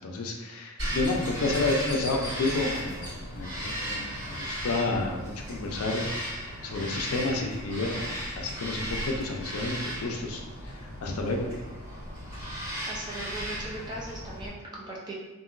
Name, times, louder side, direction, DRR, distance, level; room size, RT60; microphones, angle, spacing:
voice 1, 0.0-11.5, left 2 dB, 85° left, 2 dB, 0.5 m, -31 dB
Bird vocalization bird call bird song, 0.8-14.5, equal, 50° right, 1.5 m, -35 dB
voice 2, 12.9-15.1, right 1 dB, 20° right, -5 dB, 0.6 m, -39 dB
2.8 x 2.5 x 2.5 m, 1.1 s
head